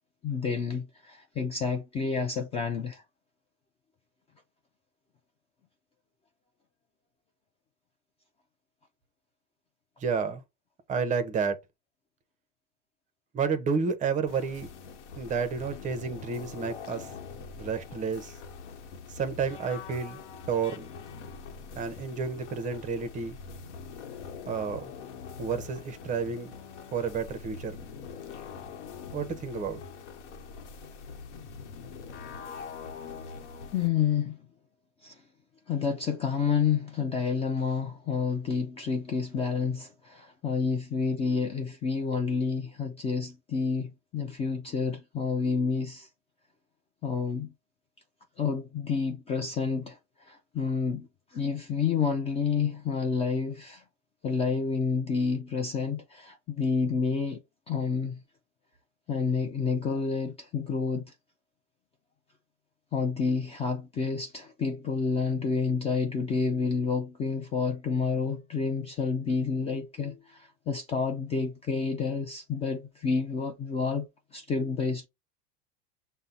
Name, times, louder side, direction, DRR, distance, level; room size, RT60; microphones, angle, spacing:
voice 1, 0.2-3.0 33.7-34.4 35.0-35.2 35.7-46.1 47.0-47.5 48.4-53.8 54.2-57.4 57.7-58.2 59.1-61.1 62.9-75.1, left 5 dB, 20° left, 0.4 m, -29 dB
voice 2, 10.0-10.4 10.9-11.6 13.3-14.7 15.2-17.1 17.6-18.4 19.1-20.2 20.5-20.9 21.8-23.4 24.5-24.9 25.4-26.6 26.9-27.8 29.1-29.8, right 5 dB, 20° right, 0.6 m, -30 dB
sound 1, 14.3-33.9, left 5 dB, 85° left, 1.0 m, -43 dB
5.5 x 2.1 x 3.8 m
supercardioid pair, 135°, 34 cm